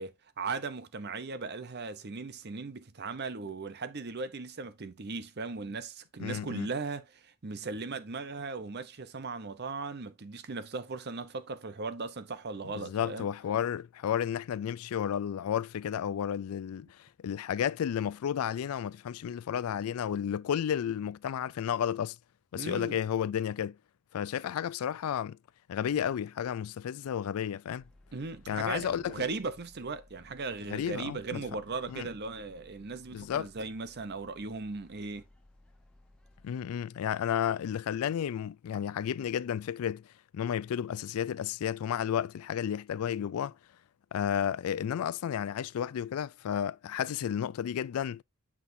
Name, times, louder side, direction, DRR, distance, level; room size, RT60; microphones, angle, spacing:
voice 1, 0.0-13.3 22.6-23.0 28.1-35.2, right 4 dB, 45° right, 0.7 m, -38 dB
voice 2, 6.2-6.7 12.7-22.2 22.5-23.8 24.1-25.4 25.7-27.8 28.5-29.3 30.7-31.4 31.9-32.1 33.1-33.5 36.4-43.6 44.1-48.2, left 9 dB, 75° left, 0.3 m, -32 dB
sound 1, 27.8-36.5, left 1 dB, 5° left, 0.9 m, -59 dB
7.3 x 6.0 x 2.7 m
head